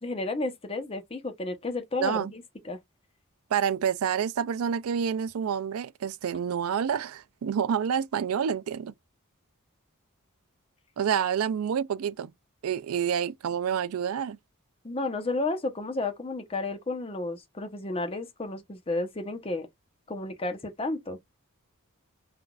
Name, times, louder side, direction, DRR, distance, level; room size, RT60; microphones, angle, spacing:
voice 1, 0.0-2.8 14.8-19.7 20.1-21.2, left 2 dB, 25° left, 0.8 m, -32 dB
voice 2, 2.0-2.3 3.5-8.9 11.0-12.3 12.6-14.4, right 8 dB, 80° right, 0.4 m, -28 dB
5.9 x 2.5 x 2.3 m
head